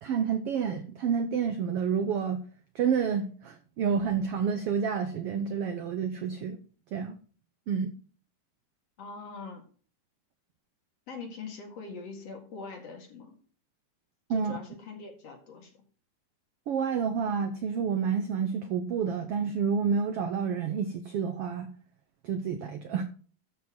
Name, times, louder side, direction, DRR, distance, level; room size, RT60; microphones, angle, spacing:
voice 1, 0.0-2.4 2.7-6.6 6.9-7.2 7.7-7.9 14.3-14.5 16.7-21.7 22.2-23.0, right 6 dB, 85° right, 1.3 m, -29 dB
voice 2, 9.0-9.6 11.1-13.3 14.3-15.7, left 4 dB, 55° left, 2.9 m, -42 dB
13.0 x 4.4 x 6.2 m
omnidirectional pair, 3.8 m